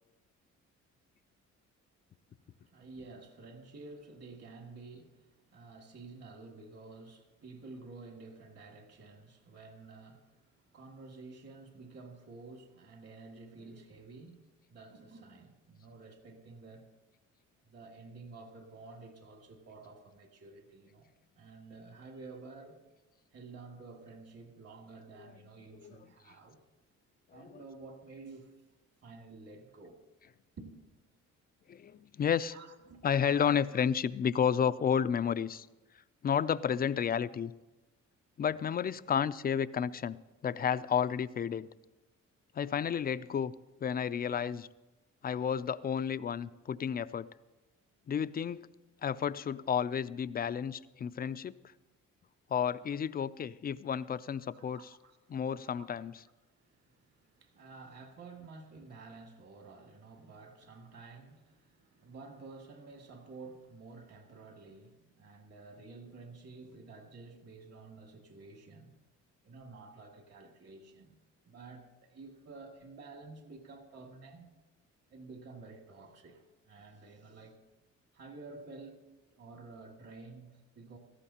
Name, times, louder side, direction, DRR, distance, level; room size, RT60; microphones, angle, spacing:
voice 1, 2.6-14.4 14.7-16.9 17.6-22.8 23.3-26.6 27.3-28.5 29.0-30.0 30.6-30.8 32.5-33.0 54.5-55.9 56.6-68.9 69.4-71.2 71.4-74.5 75.1-77.6 78.1-79.0 79.3-81.0, right 3 dB, 55° right, 2.3 m, -51 dB
voice 2, 27.3-27.7 31.7-32.6 33.0-35.7 36.2-37.5 38.4-40.2 40.4-41.7 42.5-43.5 43.8-44.7 45.2-47.3 48.1-48.7 49.0-51.5 52.5-55.0 55.3-56.2, left 8 dB, 30° left, 0.4 m, -31 dB
17.5 x 14.5 x 2.9 m
cardioid pair, 90°, 30 cm